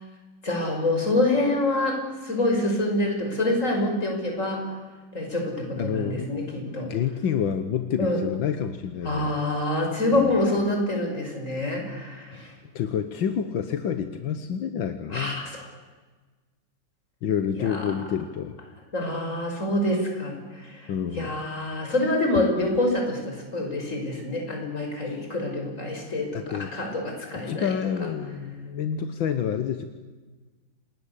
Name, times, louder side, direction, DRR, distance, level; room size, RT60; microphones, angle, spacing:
voice 1, 0.4-4.7 5.1-6.9 8.0-8.2 9.0-12.5 15.1-15.6 17.5-17.9 18.9-27.7 28.0-28.1, left 1 dB, 40° left, 2 dB, 6.2 m, -26 dB
voice 2, 5.8-9.4 10.2-10.3 12.8-15.4 17.2-18.6 20.9-21.3 26.3-26.7 27.4-29.8, left 8 dB, 80° left, 9 dB, 2.0 m, -28 dB
28.0 x 20.0 x 8.4 m, 1.3 s
omnidirectional pair, 2.1 m